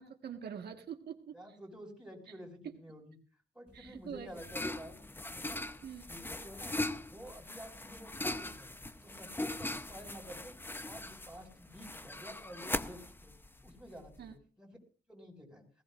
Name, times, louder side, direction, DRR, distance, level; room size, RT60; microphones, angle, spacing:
voice 1, 0.0-1.4 2.6-2.7 3.7-4.3 5.8-6.1 14.2-14.3, right 8 dB, 70° right, 3 dB, 1.5 m, -44 dB
voice 2, 1.3-3.2 3.5-5.0 5.3-5.6 6.1-6.8 7.0-8.7 9.0-10.5 10.8-13.3 13.6-14.8 15.1-15.6, equal, 5° right, 1 dB, 5.7 m, -50 dB
sound 1, 3.7-14.3, left 2 dB, 10° left, 0.8 m, -40 dB
19.5 x 16.5 x 2.5 m, 0.38 s
cardioid pair, 95°, 17 cm